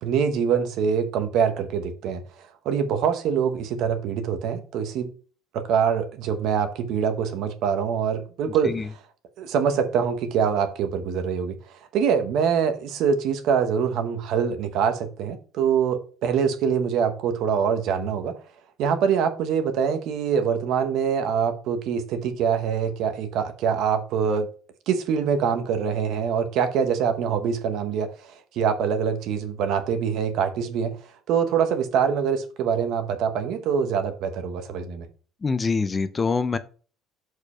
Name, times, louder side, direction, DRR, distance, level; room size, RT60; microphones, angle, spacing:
voice 1, 0.0-2.2 2.6-5.1 5.5-8.8 9.4-11.6 11.9-18.4 18.8-24.5 24.9-28.1 28.5-31.0 31.3-35.1, right 7 dB, 50° right, 1.0 m, -24 dB
voice 2, 8.5-8.9 35.4-36.6, left 4 dB, 15° left, 0.4 m, -25 dB
6.7 x 4.8 x 4.3 m
cardioid pair, 180°, 0 cm